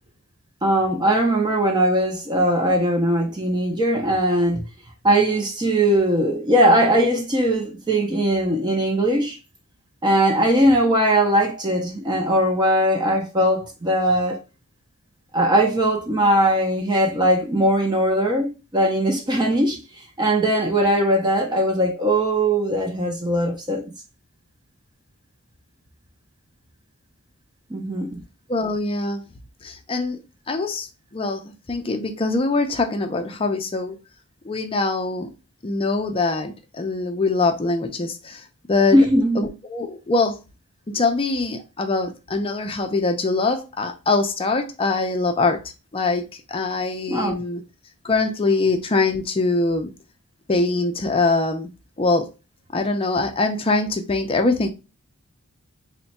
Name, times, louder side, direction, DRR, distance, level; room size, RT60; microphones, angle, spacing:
voice 1, 0.6-4.6 5.0-9.4 10.0-14.4 15.3-19.8 20.2-23.9 27.7-28.2 38.9-39.5 47.1-47.3, right 1 dB, 20° right, 0.5 m, -20 dB
voice 2, 28.5-29.2 29.6-30.2 30.5-30.9 31.1-34.0 34.4-35.3 35.6-38.4 38.7-39.1 39.4-40.4 40.9-45.6 45.9-47.6 48.0-49.9 50.5-51.7 52.0-52.3 52.7-54.7, left 3 dB, 25° left, 0.5 m, -23 dB
3.4 x 2.2 x 4.1 m
head